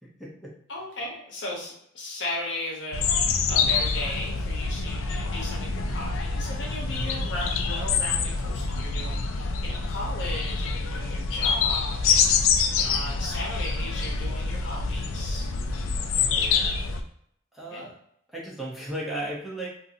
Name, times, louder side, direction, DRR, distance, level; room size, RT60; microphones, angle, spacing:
voice 1, 0.0-0.5 6.9-7.2 16.1-16.8 17.5-18.0 18.3-19.7, right 1 dB, ahead, -6 dB, 0.6 m, -36 dB
voice 2, 0.7-12.3 12.7-15.5 17.7-17.8, left 1 dB, 60° left, -2 dB, 0.9 m, -36 dB
sound 1, 2.9-17.0, left 5 dB, 85° left, 0.4 m, -26 dB
2.6 x 2.5 x 2.6 m, 0.70 s
head